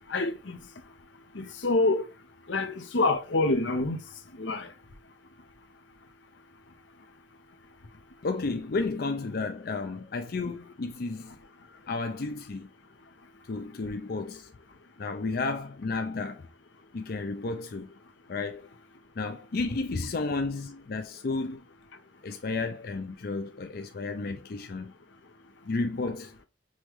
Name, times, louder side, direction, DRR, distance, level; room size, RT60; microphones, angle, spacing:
voice 1, 0.1-0.6 1.3-2.1 2.5-4.0 4.3-4.7, left 2 dB, 85° left, 0.9 m, -27 dB
voice 2, 8.2-11.3 11.9-12.7 13.4-14.5 15.0-16.4 16.9-17.9 18.3-18.7 19.2-21.7 22.2-24.9 25.6-26.3, left 3 dB, 55° left, 0.5 m, -32 dB
5.5 x 3.1 x 3.1 m
head